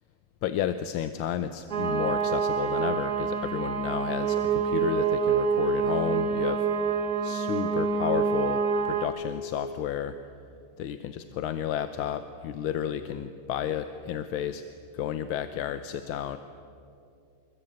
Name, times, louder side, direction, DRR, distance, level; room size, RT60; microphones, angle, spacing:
voice 1, 0.4-6.7 7.2-10.2 10.8-14.6 14.9-16.4, left 10 dB, 85° left, 10 dB, 1.7 m, -32 dB
sound 1, 1.7-9.1, right 5 dB, 50° right, 1.9 m, -26 dB
27.0 x 21.5 x 8.8 m, 2.5 s
omnidirectional pair, 2.2 m